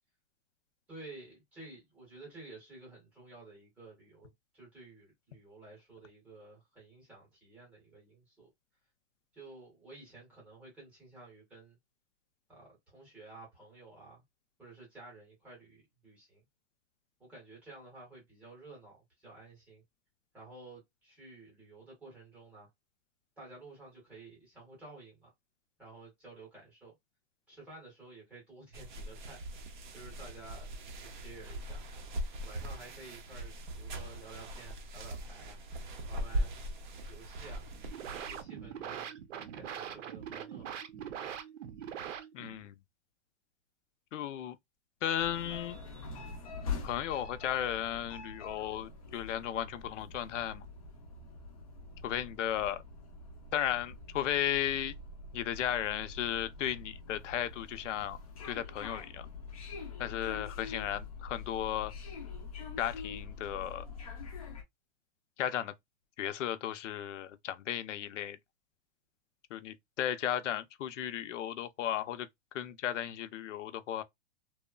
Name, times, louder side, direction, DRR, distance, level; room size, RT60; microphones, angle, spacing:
voice 1, 0.9-8.5 9.3-11.8 12.5-14.2 14.6-16.4 17.2-19.8 20.3-22.7 23.4-25.3 25.8-26.9 27.5-29.4 29.9-31.8 32.4-35.6 36.1-36.6 37.1-37.7 37.9-39.2 39.5-40.8, right 2 dB, 5° right, 0.7 m, -52 dB
sound 1, 28.7-38.4, right 1 dB, 45° right, 0.5 m, -40 dB
sound 2, 37.7-42.7, right 9 dB, 90° right, 0.7 m, -42 dB
voice 2, 42.3-42.7 44.1-44.6 45.0-45.8 46.8-50.6 52.0-52.8 53.5-54.9 55.3-58.2 58.4-59.3 60.0-61.9 62.8-63.8 65.4-65.7 66.2-68.4 69.5-72.3 72.5-74.0, left 11 dB, 85° left, 0.6 m, -35 dB
sound 3, 45.2-64.6, left 4 dB, 30° left, 0.4 m, -44 dB
3.0 x 2.0 x 2.3 m
supercardioid pair, 180°, 36 cm